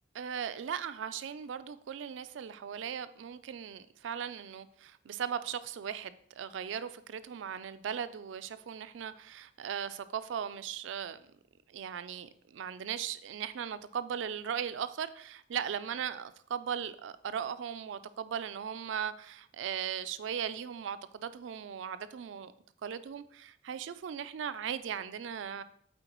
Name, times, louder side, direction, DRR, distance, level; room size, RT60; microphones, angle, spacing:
voice 1, 0.1-11.2 11.7-22.5 22.8-25.6, right 8 dB, 85° right, 0.4 m, -38 dB
7.7 x 4.4 x 3.0 m
head